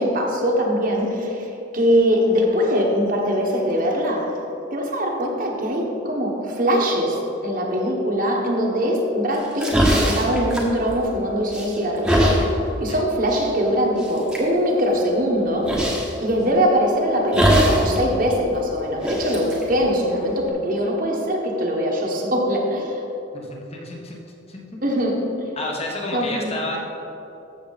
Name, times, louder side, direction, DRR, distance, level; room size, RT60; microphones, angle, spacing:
voice 1, 0.0-1.5 1.7-4.3 4.7-12.4 12.8-15.7 16.2-23.0 24.8-25.2 26.1-26.5, equal, 45° right, -1 dB, 1.4 m, -22 dB
sound 1, 9.3-11.2 11.5-12.4 13.3-13.5 14.0-14.4 15.7-16.1 17.3-18.0 18.2-18.3 19.0-20.5, equal, 5° right, 1.3 m, -21 dB
voice 2, 23.3-24.6 25.6-26.8, left 1 dB, 30° left, -1 dB, 1.3 m, -31 dB
14.0 x 6.8 x 4.2 m, 3.0 s
head